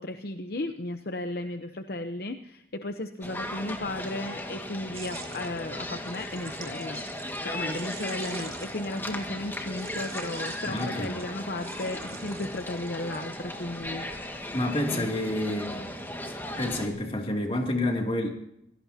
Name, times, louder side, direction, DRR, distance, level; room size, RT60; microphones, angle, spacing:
voice 1, 0.0-7.0 7.4-14.7 14.9-15.2, left 2 dB, 55° left, 7 dB, 0.9 m, -35 dB
sound 1, 3.2-16.9, left 1 dB, 10° left, 1.8 m, -37 dB
sound 2, 4.9-9.2 9.7-13.7, right 6 dB, 30° right, 2.5 m, -47 dB
voice 2, 10.7-11.1 14.5-15.9 16.6-18.3, left 1 dB, 30° left, 2 dB, 2.7 m, -28 dB
26.0 x 17.5 x 2.8 m, 0.78 s
head